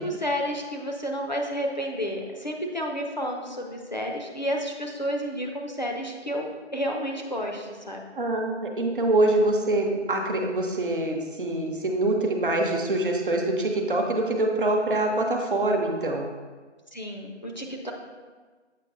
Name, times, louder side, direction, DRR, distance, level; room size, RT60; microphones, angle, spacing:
voice 1, 0.0-6.5 6.7-8.0 16.9-17.9, equal, 40° left, 0 dB, 0.5 m, -31 dB
voice 2, 8.1-16.3, right 2 dB, 45° right, 2 dB, 0.7 m, -25 dB
7.4 x 4.9 x 2.6 m, 1.4 s
figure-of-eight pair, 170°, 36 cm